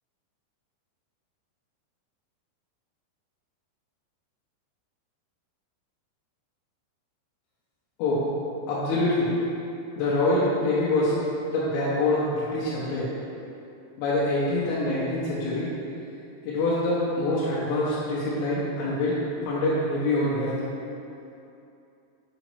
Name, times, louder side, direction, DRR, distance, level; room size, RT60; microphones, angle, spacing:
voice 1, 8.7-9.3 10.0-11.2 11.5-13.1 14.0-15.7 16.4-20.5, left 2 dB, 90° left, -8 dB, 3.5 m, -25 dB
6.9 x 5.1 x 3.2 m, 2.7 s
omnidirectional pair, 5.6 m